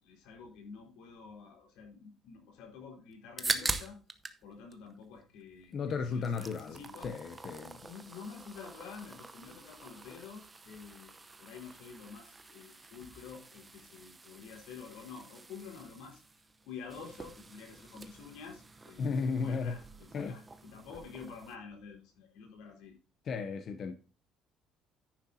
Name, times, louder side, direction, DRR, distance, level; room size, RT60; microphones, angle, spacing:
voice 1, 0.0-4.0 4.4-7.1 7.8-16.2 16.6-22.9, left 5 dB, 80° left, 4.6 m, -49 dB
sound 1, 3.1-4.4 4.7-5.7 6.0-21.6, right 3 dB, 15° right, 0.8 m, -44 dB
voice 2, 5.7-7.8 19.0-19.8 20.1-20.4 23.2-23.9, left 5 dB, 35° left, 0.8 m, -34 dB
10.5 x 10.0 x 2.8 m
cardioid pair, 170°, 0 cm